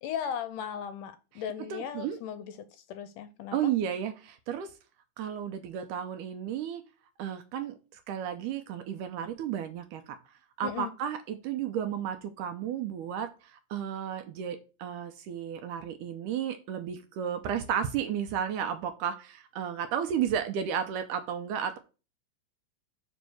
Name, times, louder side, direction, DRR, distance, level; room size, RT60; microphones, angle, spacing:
voice 1, 0.0-3.6 10.6-10.9, left 8 dB, 80° left, 2.0 m, -37 dB
voice 2, 1.7-2.2 3.5-4.7 5.2-6.8 7.2-10.2 10.6-21.8, right 9 dB, 80° right, 2.0 m, -33 dB
5.5 x 5.2 x 6.2 m
omnidirectional pair, 4.0 m